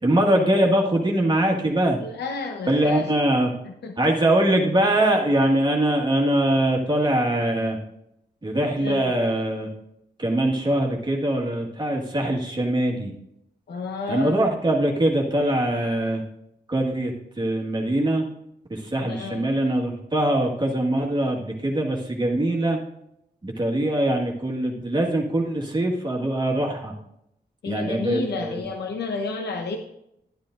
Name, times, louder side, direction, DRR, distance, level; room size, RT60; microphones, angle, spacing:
voice 1, 0.0-2.0 2.7-3.5 4.0-7.8 8.4-9.7 10.2-13.1 14.1-16.2 16.7-18.2 18.7-22.8 23.4-26.9 27.6-28.6, right 1 dB, 25° right, -1 dB, 1.7 m, -22 dB
voice 2, 2.0-3.1 3.6-3.9 8.8-9.1 13.7-14.4 19.1-19.5 27.6-29.8, left 4 dB, 85° left, 4 dB, 0.9 m, -31 dB
11.5 x 10.5 x 2.6 m, 0.79 s
wide cardioid pair, 105°, 17 cm